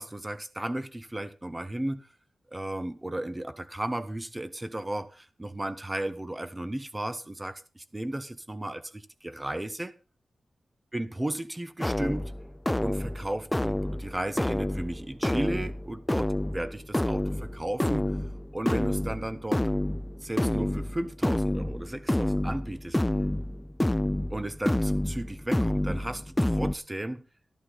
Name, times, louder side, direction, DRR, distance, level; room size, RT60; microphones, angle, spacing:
voice 1, 0.0-2.1 2.5-9.9 10.9-12.3 12.8-18.1 18.5-19.6 20.2-23.0 24.3-27.3, right 1 dB, 15° right, 1.3 m, -34 dB
sound 1, 11.8-26.7, left 1 dB, 10° left, 0.6 m, -29 dB
13.5 x 12.0 x 4.2 m
wide cardioid pair, 125°, 0 cm